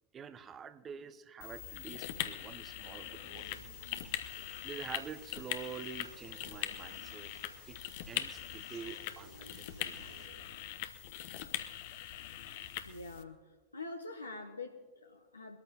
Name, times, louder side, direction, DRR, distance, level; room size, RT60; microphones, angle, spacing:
voice 1, 0.1-3.6 3.9-4.0 4.6-7.3 7.7-10.1, right 7 dB, 25° right, 13 dB, 0.8 m, -47 dB
sound 1, 1.4-13.2, left 12 dB, 50° left, 0.9 m, -42 dB
Male speech man speaking, 2.8-5.0 6.1-7.9 8.8-10.8, right 4 dB, 60° right, 4.2 m, -58 dB
sound 2, 3.3-10.3, right 8 dB, 40° right, 1.8 m, -63 dB
voice 2, 12.8-15.6, left 3 dB, 80° left, 2 dB, 1.1 m, -45 dB
23.0 x 13.5 x 2.9 m, 1.4 s
figure-of-eight pair, 90°, 0 cm